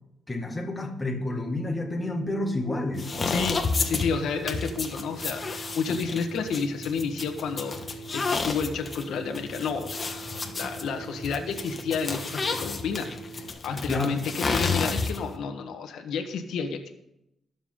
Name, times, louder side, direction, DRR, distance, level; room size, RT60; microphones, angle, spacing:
voice 1, 0.3-3.4 13.9-14.2, left 2 dB, 15° left, 1 dB, 2.0 m, -30 dB
Telephone, 1.3-13.5, right 6 dB, 80° right, 1.8 m, -44 dB
sound 1, 2.9-15.4, left 4 dB, 30° left, 1.3 m, -31 dB
voice 2, 3.3-10.3 10.5-16.9, left 5 dB, 85° left, 5 dB, 1.4 m, -31 dB
21.5 x 7.2 x 3.8 m, 0.84 s
cardioid pair, 125°, 0 cm